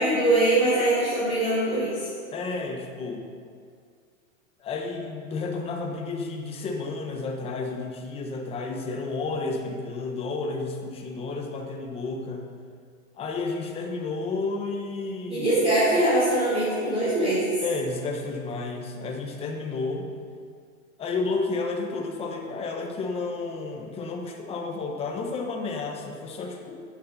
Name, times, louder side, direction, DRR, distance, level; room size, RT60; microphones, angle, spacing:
voice 1, 0.0-2.1 15.3-17.5, right 1 dB, 15° right, -12 dB, 3.2 m, -22 dB
voice 2, 2.3-3.2 4.6-12.5 13.2-15.5 17.6-20.1 21.0-26.8, left 3 dB, 15° left, 2 dB, 0.9 m, -31 dB
9.8 x 8.9 x 5.4 m, 2.2 s
supercardioid pair, 155°, 41 cm